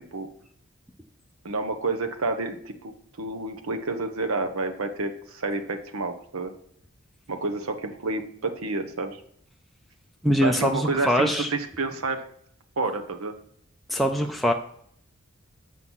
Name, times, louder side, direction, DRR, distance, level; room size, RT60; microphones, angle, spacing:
voice 1, 1.4-6.5 7.3-9.2 10.4-12.2 12.8-13.4, right 3 dB, 85° right, 6 dB, 1.0 m, -29 dB
voice 2, 10.2-11.5 13.9-14.5, equal, ahead, 3 dB, 0.4 m, -23 dB
7.5 x 6.2 x 5.5 m, 0.65 s
head